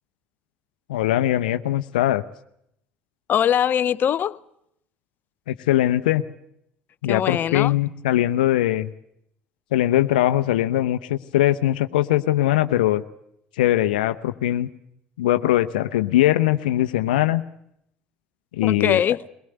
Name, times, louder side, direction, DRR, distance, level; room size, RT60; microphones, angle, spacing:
voice 1, 0.9-2.2 5.5-6.2 7.0-8.9 9.7-13.0 13.6-14.7 15.2-17.4 18.5-19.1, left 14 dB, 85° left, 0.8 m, -21 dB
voice 2, 3.3-4.4 7.1-7.7 18.6-19.2, left 9 dB, 45° left, 0.8 m, -22 dB
22.5 x 19.0 x 8.0 m
hypercardioid pair, 75°, 5 cm